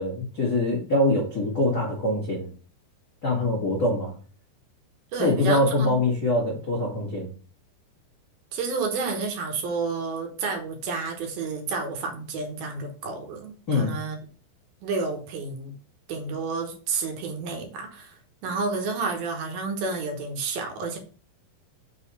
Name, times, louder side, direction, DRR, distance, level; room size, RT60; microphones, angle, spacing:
voice 1, 0.0-2.5 3.2-4.1 5.2-7.3 13.7-13.9, left 1 dB, 75° left, -4 dB, 0.8 m, -24 dB
voice 2, 5.1-6.0 8.5-14.2 14.8-15.7 16.1-21.0, right 4 dB, 70° right, 3 dB, 2.7 m, -30 dB
6.4 x 4.1 x 5.5 m, 0.40 s
omnidirectional pair, 5.0 m